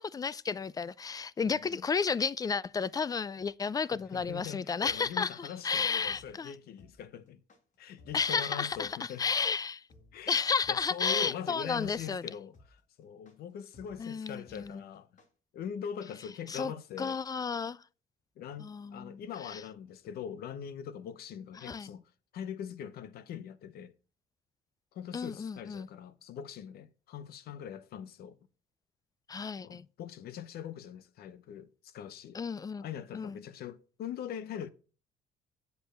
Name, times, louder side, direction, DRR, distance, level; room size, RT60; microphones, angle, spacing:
voice 1, 0.0-6.5 8.1-9.8 10.3-12.3 14.0-14.8 16.5-16.7 17.0-17.8 18.6-19.6 21.6-21.9 25.1-25.9 29.3-29.9 32.3-32.9 33.1-33.4, left 5 dB, 20° left, 0.4 m, -32 dB
voice 2, 1.4-1.9 3.9-7.4 7.8-9.2 10.1-10.4 10.7-12.5 13.0-15.1 15.5-17.2 18.4-22.0 22.3-23.9 24.9-28.4 29.6-32.4 32.8-34.7, left 8 dB, 65° left, 0.9 m, -42 dB
sound 1, 4.6-15.3, left 2 dB, 45° left, 2.0 m, -59 dB
8.1 x 5.2 x 5.8 m
cardioid pair, 110°, 17 cm